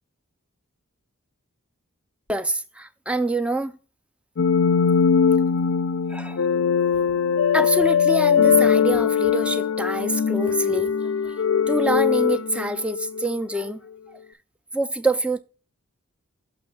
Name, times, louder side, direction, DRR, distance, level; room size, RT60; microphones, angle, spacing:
voice 1, 2.3-3.7 6.1-6.5 7.5-10.9 11.2-11.3 11.7-13.9 14.7-15.4, right 2 dB, 5° right, 0.4 m, -26 dB
sound 1, 4.4-13.3, left 7 dB, 60° left, 0.4 m, -21 dB
6.3 x 6.0 x 3.4 m
head